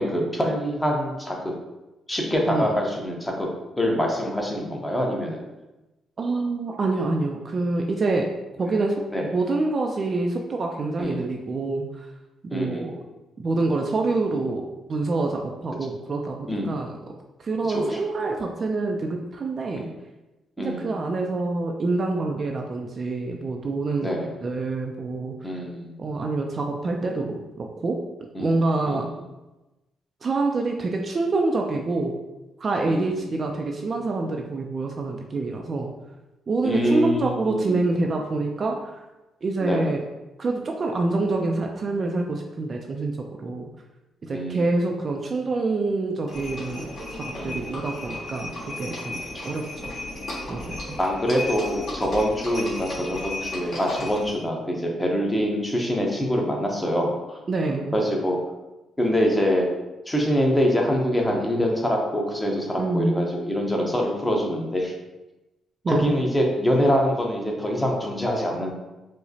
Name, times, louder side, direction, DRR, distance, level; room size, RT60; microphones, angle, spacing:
voice 1, 0.0-1.5 2.1-3.5 3.8-5.5 9.1-9.3 11.0-11.2 12.5-12.9 16.5-16.7 17.7-18.0 19.7-19.9 20.6-20.9 24.0-24.3 25.4-25.9 28.3-28.5 28.9-29.2 32.9-33.3 36.6-37.8 39.6-39.9 44.3-44.8 47.4-47.8 49.3-49.5 51.0-57.4 57.9-58.4 59.0-59.7 60.1-64.9 65.9-68.7, equal, 15° left, 0 dB, 0.8 m, -25 dB
voice 2, 2.5-2.8 6.2-8.3 8.6-9.0 9.3-12.1 12.5-13.0 13.4-17.0 17.4-19.9 20.6-24.1 24.4-25.3 26.0-28.0 28.4-29.1 30.2-32.1 32.6-35.9 36.5-39.0 39.4-40.0 40.4-43.7 44.2-48.5 48.8-49.9 50.5-50.7 57.5-58.0 62.8-63.2 65.8-66.1, right 3 dB, 45° right, 1 dB, 0.3 m, -26 dB
Livestock farm animals working animals, 46.3-54.4, left 2 dB, 55° left, 1.5 m, -35 dB
4.7 x 2.0 x 2.7 m, 1.0 s
cardioid pair, 85°, 0 cm